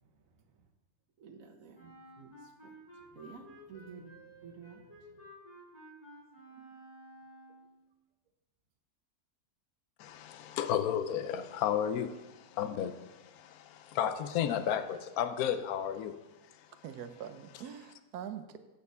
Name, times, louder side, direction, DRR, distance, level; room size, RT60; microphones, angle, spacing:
voice 1, 0.0-0.7 1.2-2.8 3.1-5.3, right 5 dB, 65° right, 6 dB, 1.4 m, -53 dB
Wind instrument woodwind instrument, 1.7-7.8, equal, 25° left, 2.9 m, -54 dB
voice 2, 10.0-16.2 16.5-16.7, left 9 dB, 75° left, 10 dB, 1.1 m, -33 dB
voice 3, 16.8-18.6, right 9 dB, 90° right, 9 dB, 1.3 m, -43 dB
8.5 x 6.6 x 6.8 m, 1.1 s
omnidirectional pair, 1.6 m